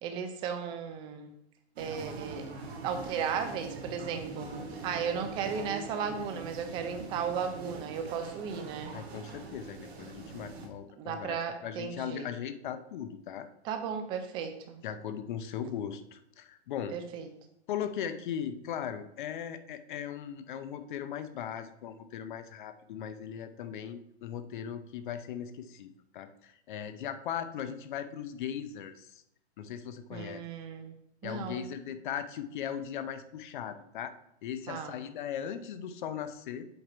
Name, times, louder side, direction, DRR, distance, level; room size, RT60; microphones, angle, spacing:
voice 1, 0.0-1.3 1.8-2.5 2.8-4.5 4.8-8.9 11.0-12.3 13.6-14.8 16.9-17.3 30.1-30.9 31.2-31.7 34.7-35.0, right 7 dB, 15° right, 7 dB, 0.5 m, -35 dB
sound 1, 1.8-10.7, right 4 dB, 65° right, 1.8 m, -43 dB
voice 2, 8.9-13.5 14.8-16.9 17.7-29.2 29.6-30.4 31.2-34.1 34.4-36.7, left 9 dB, 45° left, 10 dB, 0.7 m, -38 dB
7.9 x 3.6 x 4.4 m, 0.77 s
hypercardioid pair, 145°, 34 cm